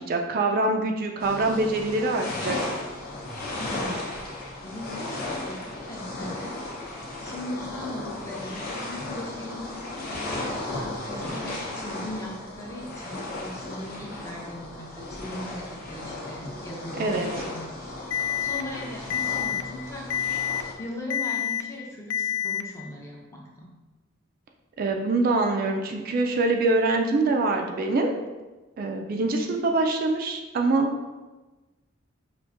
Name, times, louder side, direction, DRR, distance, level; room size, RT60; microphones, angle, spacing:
voice 1, 0.0-2.6 16.9-17.3 24.8-28.1 28.8-30.9, right 2 dB, 45° right, 3 dB, 0.3 m, -24 dB
sound 1, 1.2-20.7, left 2 dB, 50° left, 0.7 m, -35 dB
voice 2, 3.6-4.3 4.6-23.7, left 1 dB, 15° left, -2 dB, 0.5 m, -39 dB
Alarm, 18.1-18.6 19.1-19.6 20.1-20.6 21.1-21.6 22.1-22.6, left 9 dB, 80° left, 0.3 m, -27 dB
5.1 x 2.5 x 2.4 m, 1.2 s
head